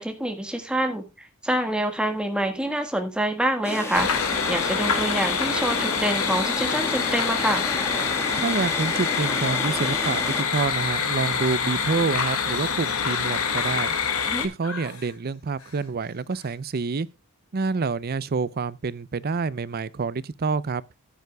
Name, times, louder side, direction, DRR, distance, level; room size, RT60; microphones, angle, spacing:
voice 1, 0.0-7.6 14.3-14.5, right 1 dB, 5° right, 1.5 m, -26 dB
sound 1, 3.6-10.4, left 1 dB, 10° left, 1.5 m, -32 dB
sound 2, 3.9-14.5, left 6 dB, 85° left, 2.0 m, -26 dB
voice 2, 8.4-13.9 14.4-17.1 17.5-20.8, right 4 dB, 45° right, 0.5 m, -27 dB
sound 3, 10.5-11.0 11.8-14.3 14.6-15.2 15.6-15.9 16.3-16.6, left 3 dB, 70° left, 5.0 m, -42 dB
14.0 x 9.4 x 2.3 m
head